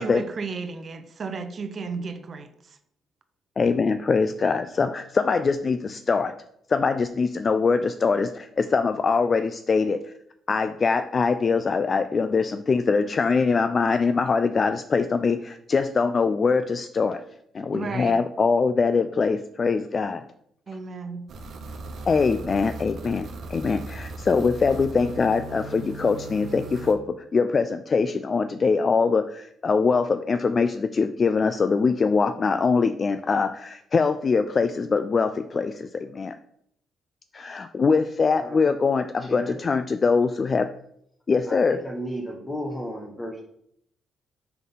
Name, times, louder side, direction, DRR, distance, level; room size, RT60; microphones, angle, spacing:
voice 1, 0.0-2.8 17.7-18.2 20.7-21.2, right 4 dB, 45° right, 9 dB, 0.8 m, -33 dB
voice 2, 3.6-6.3 6.7-10.0 10.5-17.2 17.5-20.2 22.1-36.4 37.3-40.7 41.3-41.8, left 4 dB, 40° left, 10 dB, 0.3 m, -23 dB
sound 1, 21.3-26.9, right 2 dB, 65° right, 1.1 m, -38 dB
voice 3, 38.4-38.7 39.2-39.6 41.4-43.4, equal, 15° left, 1 dB, 1.0 m, -34 dB
5.9 x 3.6 x 5.4 m, 0.72 s
cardioid pair, 90°, 0 cm